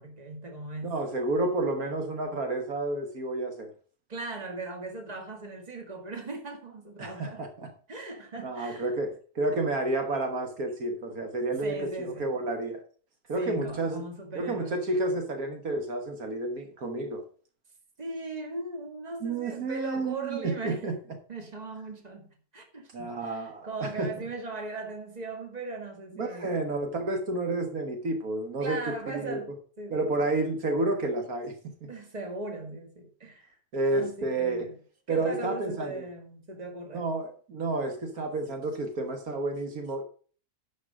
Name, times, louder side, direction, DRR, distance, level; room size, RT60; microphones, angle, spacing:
voice 1, 0.0-0.9 4.1-7.4 7.9-8.9 11.5-12.3 13.4-14.7 18.0-20.9 21.3-26.7 28.6-30.1 31.9-33.5 33.9-34.8 35.1-37.1, right 2 dB, 25° right, 1.9 m, -38 dB
voice 2, 0.8-3.7 7.0-7.7 8.4-9.1 9.4-12.8 13.3-14.0 14.4-17.2 19.2-21.0 22.9-24.1 26.1-29.4 29.9-31.9 33.7-34.7 35.1-36.0 36.9-40.0, right 2 dB, 70° right, 1.9 m, -30 dB
11.0 x 5.1 x 5.1 m
omnidirectional pair, 1.6 m